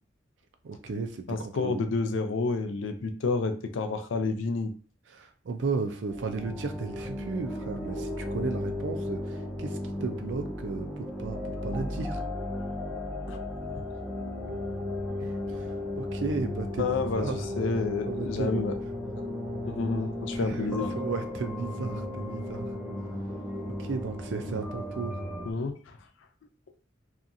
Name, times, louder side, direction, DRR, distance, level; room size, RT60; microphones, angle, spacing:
voice 1, 0.6-1.8 5.1-12.2 15.2-17.5 18.1-18.7 20.3-22.7 23.6-25.2, right 4 dB, 70° right, 6 dB, 0.4 m, -35 dB
voice 2, 1.3-4.7 13.3-13.4 13.7-13.8 16.8-17.3 17.6-18.7 19.6-20.9 25.5-25.7, left 3 dB, 80° left, 7 dB, 0.4 m, -29 dB
sound 1, 6.1-25.5, left 1 dB, 5° right, 0.5 m, -35 dB
2.8 x 2.3 x 2.6 m, 0.39 s
head